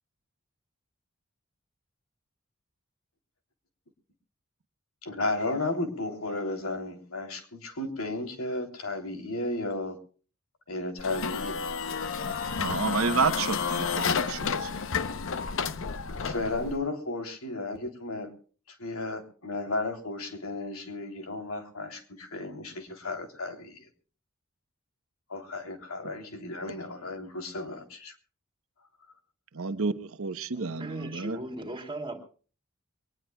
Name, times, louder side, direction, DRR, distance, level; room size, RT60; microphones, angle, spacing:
voice 1, 5.0-10.0 10.7-11.6 15.5-15.8 16.2-18.3 18.7-23.9 25.3-28.1, left 2 dB, 90° left, 3.2 m, -34 dB
sound 1, 11.0-16.8, left 5 dB, 65° left, 0.8 m, -31 dB
voice 2, 12.6-14.7 29.5-31.4, right 4 dB, 70° right, 0.9 m, -30 dB
voice 3, 30.5-32.2, right 1 dB, 25° right, 2.9 m, -38 dB
23.5 x 19.5 x 2.3 m
head